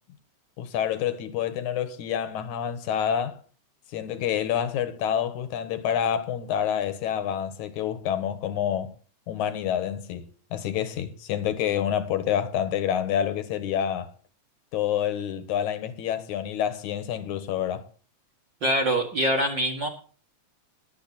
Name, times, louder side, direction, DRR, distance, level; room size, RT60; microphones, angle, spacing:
voice 1, 0.6-3.4 3.9-8.9 9.3-14.1 14.7-17.9, left 9 dB, 80° left, 2.8 m, -28 dB
voice 2, 18.6-19.9, right 1 dB, 40° right, 2.5 m, -24 dB
21.0 x 8.2 x 4.2 m
omnidirectional pair, 3.4 m